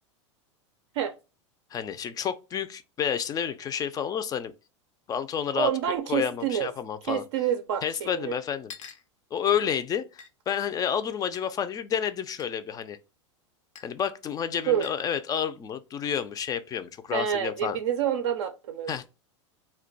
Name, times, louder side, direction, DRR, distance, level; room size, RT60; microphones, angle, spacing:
voice 1, 1.7-4.5 5.1-5.7 6.1-7.2 7.8-8.7 9.3-13.0 13.8-17.8 18.9-19.1, left 8 dB, 25° left, 0.3 m, -30 dB
voice 2, 5.5-6.7 7.1-8.4 14.7-14.9 17.1-18.9, right 9 dB, 70° right, 0.5 m, -28 dB
sound 1, 8.7-9.1 10.2-10.3 11.3-11.4 12.4-12.5 13.7-13.9 14.8-15.1, left 6 dB, 80° left, 0.5 m, -45 dB
2.3 x 2.2 x 3.9 m
hypercardioid pair, 100°, 16 cm